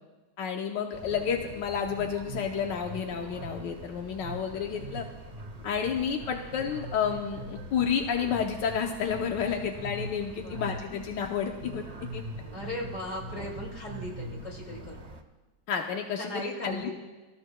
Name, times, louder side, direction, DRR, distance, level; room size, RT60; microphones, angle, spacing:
voice 1, 0.4-5.1 5.6-11.8 12.1-12.2 15.7-16.9, left 7 dB, 85° left, 3 dB, 1.5 m, -30 dB
sound 1, 0.9-15.2, right 2 dB, 40° right, 0.5 m, -42 dB
voice 2, 10.3-10.7 12.5-15.1 16.2-16.9, left 1 dB, 45° left, -1 dB, 2.8 m, -37 dB
24.5 x 14.0 x 2.2 m, 1.2 s
omnidirectional pair, 1.9 m